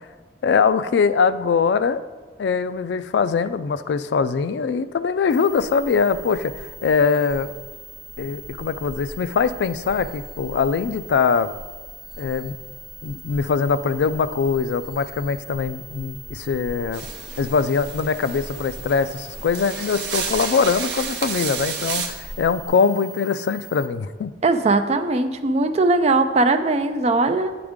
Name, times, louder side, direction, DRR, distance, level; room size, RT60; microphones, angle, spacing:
voice 1, 0.4-2.0 2.4-7.5 8.2-11.5 12.2-12.5 13.0-17.0 17.4-24.3, left 5 dB, 70° left, 13 dB, 0.3 m, -22 dB
sound 1, 5.3-23.9, right 2 dB, ahead, 0.7 m, -42 dB
sound 2, 5.5-22.7, equal, 50° left, 1.1 m, -44 dB
sound 3, 16.9-22.1, right 6 dB, 70° right, 0.8 m, -31 dB
voice 2, 24.4-27.6, right 3 dB, 35° right, 8 dB, 0.4 m, -19 dB
9.5 x 5.0 x 3.6 m, 1.4 s
head